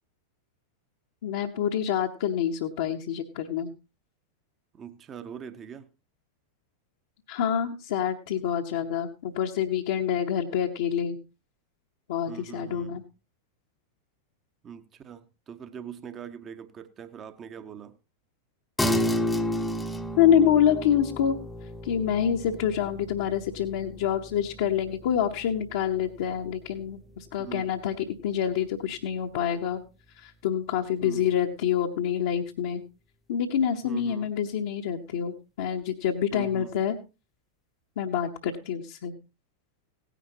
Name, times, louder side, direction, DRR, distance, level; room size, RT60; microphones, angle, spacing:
voice 1, 1.2-3.7 7.3-11.2 12.1-13.0 20.2-21.4 21.8-29.8 30.2-32.8 33.3-37.0 38.0-39.1, left 9 dB, 55° left, 0.9 m, -27 dB
voice 2, 4.7-5.9 12.3-13.0 14.6-17.9 27.4-27.7 31.0-31.4 33.8-34.3 36.3-36.7, right 7 dB, 25° right, 0.9 m, -42 dB
sound 1, 18.8-28.5, left 1 dB, 5° left, 0.8 m, -33 dB
16.5 x 10.0 x 2.8 m
figure-of-eight pair, 90°, 0 cm